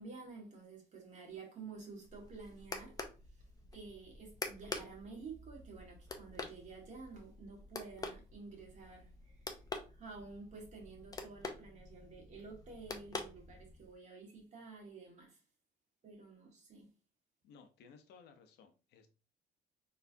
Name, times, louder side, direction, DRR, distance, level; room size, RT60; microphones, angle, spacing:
voice 1, 0.0-3.0 3.4-3.5 3.7-9.4 9.9-15.4 16.0-16.9, right 4 dB, 45° right, 1.8 m, -51 dB
sound 1, 2.0-13.9, left 3 dB, 20° left, 0.7 m, -47 dB
voice 2, 17.4-19.1, left 5 dB, 75° left, 0.8 m, -59 dB
4.3 x 3.2 x 2.7 m
cardioid pair, 110°, 17 cm